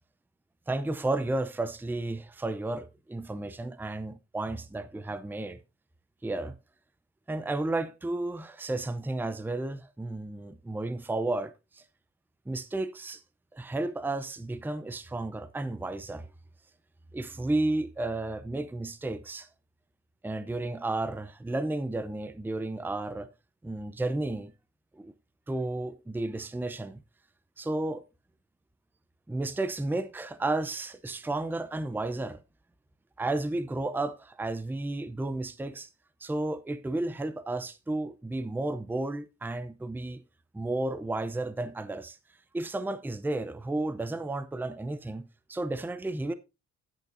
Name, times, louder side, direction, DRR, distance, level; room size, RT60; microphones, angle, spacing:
voice 1, 0.7-5.6 6.2-6.6 7.3-11.8 12.5-13.2 13.5-16.3 17.1-19.5 20.2-23.3 23.6-24.5 24.9-25.1 25.5-27.0 27.6-28.0 29.3-32.4 33.2-35.9 36.2-40.2 40.5-42.2 42.5-46.3, right 2 dB, 5° right, 0.6 m, -32 dB
18.5 x 6.7 x 2.7 m
cardioid pair, 90°, 30 cm